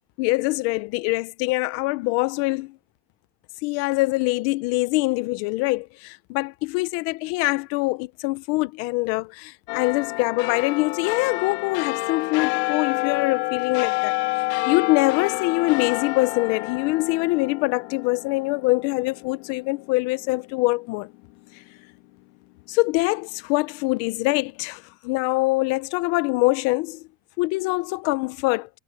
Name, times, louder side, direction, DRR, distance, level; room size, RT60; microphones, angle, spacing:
voice 1, 0.2-2.8 3.6-14.1 14.7-21.1 22.7-27.0 27.4-28.7, left 23 dB, 45° left, 0.7 m, -24 dB
sound 1, 9.7-20.4 20.9-21.0, left 25 dB, 70° left, 1.8 m, -29 dB
cardioid pair, 170°, 34 cm